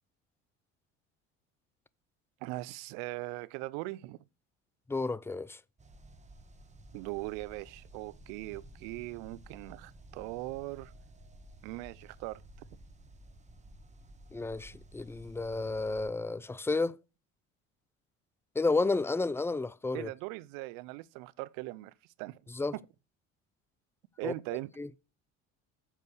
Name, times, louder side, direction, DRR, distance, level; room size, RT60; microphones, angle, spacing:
voice 1, 2.4-4.2 6.9-10.9 11.6-12.4 19.9-21.9 22.2-22.4 22.7-22.8 24.2-24.7, right 20 dB, 85° right, 0.5 m, -40 dB
voice 2, 4.9-5.6 14.3-16.9 18.6-20.1 22.6-22.7 24.2-24.3 24.8-24.9, left 3 dB, 10° left, 0.4 m, -31 dB
sound 1, 5.8-16.1, right 1 dB, 20° right, 1.4 m, -54 dB
7.3 x 5.2 x 6.5 m
supercardioid pair, 95°, 33 cm